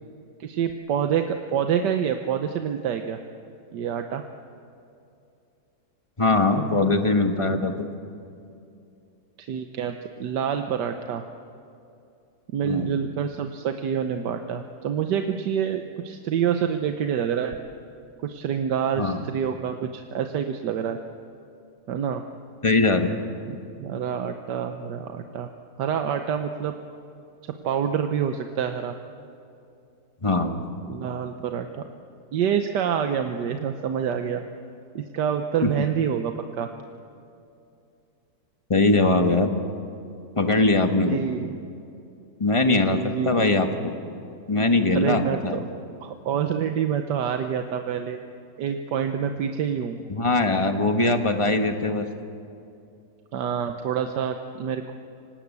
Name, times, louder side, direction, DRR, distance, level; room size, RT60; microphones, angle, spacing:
voice 1, 0.4-3.2 3.7-4.2 9.4-11.2 12.5-17.6 18.2-21.0 21.9-22.2 23.5-25.5 25.8-26.7 27.6-28.9 30.9-31.7 32.3-34.4 34.9-36.7 41.1-41.5 42.6-43.5 44.9-45.6 46.0-48.2 48.6-50.0 53.3-54.9, right 8 dB, 85° right, 6 dB, 1.5 m, -27 dB
voice 2, 6.2-7.9 12.6-13.0 19.0-19.3 22.6-23.1 30.2-30.6 35.6-35.7 38.7-39.5 40.3-41.2 42.4-43.9 44.5-45.6 50.1-52.1, left 2 dB, 20° left, 6 dB, 1.2 m, -21 dB
25.0 x 18.5 x 8.4 m, 2.6 s
omnidirectional pair, 1.8 m